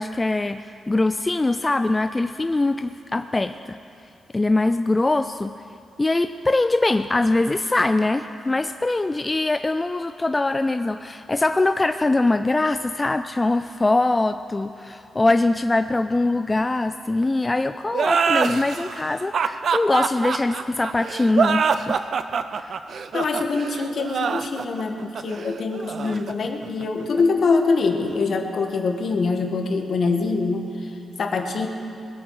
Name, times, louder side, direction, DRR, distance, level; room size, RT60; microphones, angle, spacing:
voice 1, 0.0-3.8 4.3-5.6 6.0-22.0 22.5-22.8 26.0-26.2, left 2 dB, 25° left, 9 dB, 0.4 m, -22 dB
sound 1, 17.9-27.2, right 6 dB, 65° right, 0.6 m, -25 dB
voice 2, 23.1-31.7, left 4 dB, 60° left, 4 dB, 1.5 m, -24 dB
20.5 x 8.2 x 6.3 m, 2.6 s
cardioid pair, 65°, 0 cm